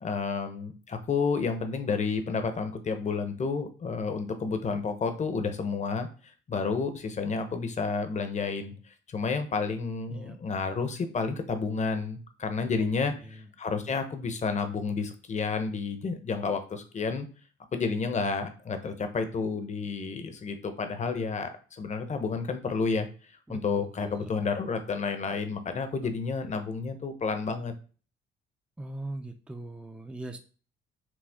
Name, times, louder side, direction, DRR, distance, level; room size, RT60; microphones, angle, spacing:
voice 1, 0.0-6.1 6.5-8.7 9.1-17.3 17.7-23.1 23.5-27.7, left 4 dB, 35° left, 8 dB, 0.8 m, -30 dB
voice 2, 13.1-13.5 23.5-23.6 24.0-24.3 28.8-30.4, right 2 dB, 5° right, 6 dB, 0.5 m, -40 dB
6.1 x 2.3 x 3.5 m, 0.38 s
cardioid pair, 100°, 21 cm